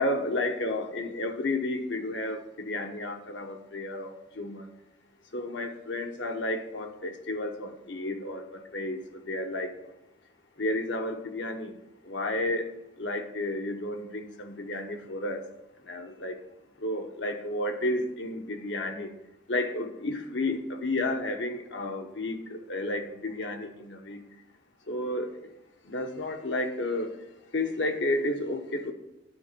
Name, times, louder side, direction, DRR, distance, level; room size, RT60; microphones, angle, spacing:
voice 1, 0.0-2.4 2.7-4.6 5.3-9.0 9.3-9.7 10.6-11.7 12.1-12.7 13.0-15.4 15.9-16.3 16.8-19.1 19.5-22.4 22.7-24.2 24.9-25.3 25.9-27.1 27.5-28.9, left 1 dB, 75° left, 4 dB, 1.0 m, -31 dB
9.6 x 4.1 x 6.7 m, 0.91 s
head